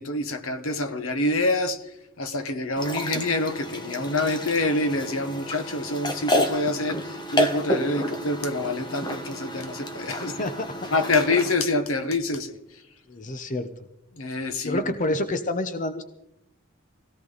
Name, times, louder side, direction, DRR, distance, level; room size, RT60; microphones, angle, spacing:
voice 1, 0.0-10.4 10.9-12.8 14.1-14.9, left 2 dB, 75° left, 1.4 m, -26 dB
sound 1, 2.8-11.5, left 1 dB, 20° left, 1.4 m, -30 dB
voice 2, 10.2-10.9 13.1-13.7 14.6-16.0, left 2 dB, 35° left, 0.9 m, -28 dB
20.0 x 17.0 x 4.1 m
head